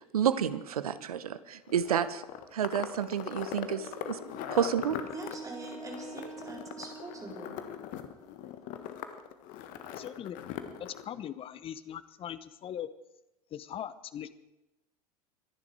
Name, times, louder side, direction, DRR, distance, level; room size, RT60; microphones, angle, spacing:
voice 1, 0.1-2.2 2.5-4.2 4.5-5.0, right 8 dB, 70° right, 15 dB, 0.9 m, -30 dB
sound 1, 1.7-11.0, left 10 dB, 45° left, 1.5 m, -41 dB
Wind instrument woodwind instrument, 3.7-7.9, right 5 dB, 90° right, 3.7 m, -47 dB
voice 2, 5.1-7.5, right 2 dB, 15° right, 1 dB, 4.3 m, -43 dB
voice 3, 9.9-10.4 10.8-12.9 13.5-14.3, left 10 dB, 30° left, 15 dB, 0.9 m, -40 dB
24.0 x 11.0 x 4.7 m, 0.94 s
figure-of-eight pair, 80°, 19 cm